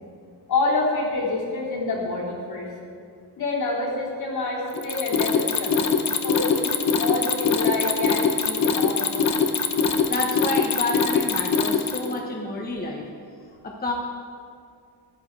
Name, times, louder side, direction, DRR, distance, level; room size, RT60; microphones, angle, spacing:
voice 1, 0.5-2.7 3.4-9.2, left 3 dB, 60° left, -5 dB, 3.8 m, -27 dB
Mechanisms, 4.7-12.2, left 5 dB, 40° left, 1.0 m, -22 dB
voice 2, 10.1-13.0 13.6-13.9, left 2 dB, 20° left, 0 dB, 1.2 m, -29 dB
13.0 x 10.5 x 4.8 m, 2.3 s
cardioid pair, 115°, 43 cm